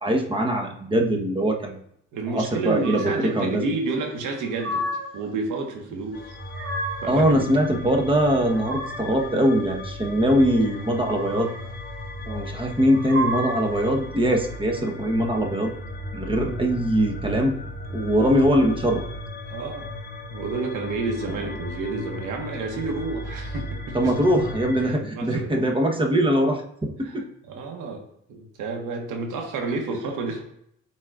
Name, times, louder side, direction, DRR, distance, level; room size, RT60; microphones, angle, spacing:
voice 1, 0.0-1.8 2.3-3.6 7.1-11.5 12.3-15.7 16.1-17.5 17.9-19.0 23.9-27.3, equal, 15° right, 2 dB, 1.1 m, -22 dB
voice 2, 2.1-4.9 5.1-6.3 7.0-7.5 19.5-19.9 20.3-24.1 24.8-25.6 27.0-27.2 27.5-28.0 28.3-30.4, right 3 dB, 85° right, 2 dB, 1.5 m, -30 dB
sound 1, 2.8-3.4 4.2-5.3 6.2-7.2 8.2-9.3 10.8-11.7 12.8-13.8, right 1 dB, 40° right, 1.3 m, -32 dB
sound 2, 6.1-24.9, left 2 dB, 30° left, 1.1 m, -36 dB
10.5 x 4.2 x 2.5 m, 0.73 s
cardioid pair, 90°, 30 cm